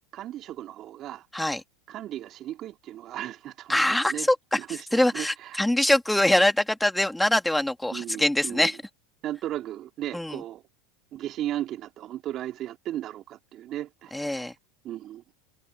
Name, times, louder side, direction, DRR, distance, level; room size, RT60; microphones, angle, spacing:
voice 1, 0.1-1.3 1.9-4.3 4.6-5.6 7.9-8.7 9.2-10.6 11.1-14.5 14.8-15.2, right 13 dB, 45° right, 3.3 m, -36 dB
voice 2, 3.7-4.6 4.9-8.8 10.1-10.4 14.1-14.5, left 1 dB, 5° left, 3.2 m, -23 dB
hypercardioid pair, 90°, 0 cm